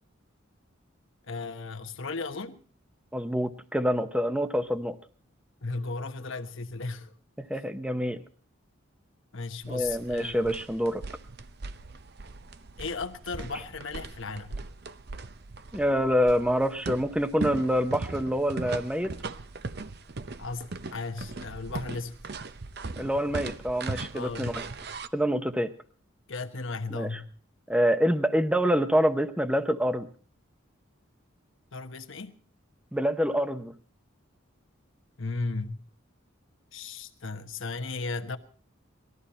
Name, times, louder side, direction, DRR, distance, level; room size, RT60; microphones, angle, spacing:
voice 1, 1.3-2.6 5.6-7.1 9.3-10.5 12.8-14.6 20.4-22.1 24.1-24.6 26.3-27.3 31.7-32.3 35.2-35.8 36.7-38.4, left 3 dB, 70° left, 1.2 m, -35 dB
voice 2, 3.1-5.0 7.4-8.2 9.7-11.0 15.7-19.1 23.0-24.6 25.1-25.7 26.9-27.1 27.7-30.1 32.9-33.7, equal, 5° right, 0.8 m, -26 dB
sound 1, 9.6-25.1, right 3 dB, 50° right, 0.7 m, -39 dB
20.0 x 14.0 x 4.3 m
head